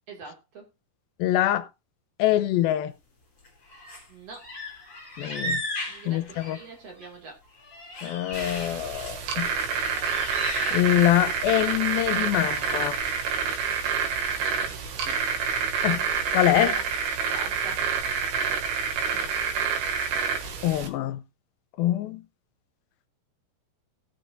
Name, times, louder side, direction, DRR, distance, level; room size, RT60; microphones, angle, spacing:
voice 1, 0.1-0.7 4.1-4.5 5.9-7.4 15.0-15.3 16.5-16.9 17.3-17.9, right 3 dB, 45° right, 3.3 m, -43 dB
voice 2, 1.2-1.7 2.2-2.9 5.2-5.6 6.1-6.6 8.0-9.5 10.7-13.0 15.8-16.0 16.3-16.7 20.6-21.2 21.8-22.2, left 13 dB, 85° left, 2.6 m, -24 dB
sound 1, 3.4-4.1 4.3-7.1 7.5-9.2 9.6-11.3 11.6-11.9 12.5-12.8, left 1 dB, 25° left, 3.4 m, -37 dB
sound 2, 8.3-20.9, right 6 dB, 80° right, 3.4 m, -28 dB
18.0 x 6.9 x 2.7 m
omnidirectional pair, 4.3 m